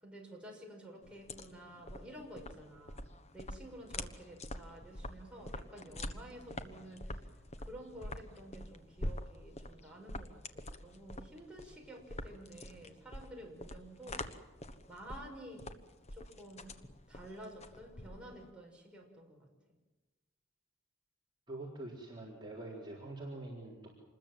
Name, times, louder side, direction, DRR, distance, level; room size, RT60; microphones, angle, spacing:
voice 1, 0.0-3.1 3.3-7.2 7.6-14.3 14.9-15.7 16.1-16.8 17.1-19.5, right 1 dB, 5° right, -2 dB, 6.0 m, -51 dB
sound 1, 1.0-18.5, left 1 dB, 30° left, 1.2 m, -45 dB
voice 2, 21.5-23.9, right 2 dB, 20° right, -4 dB, 4.1 m, -45 dB
27.0 x 21.0 x 7.7 m, 1.1 s
head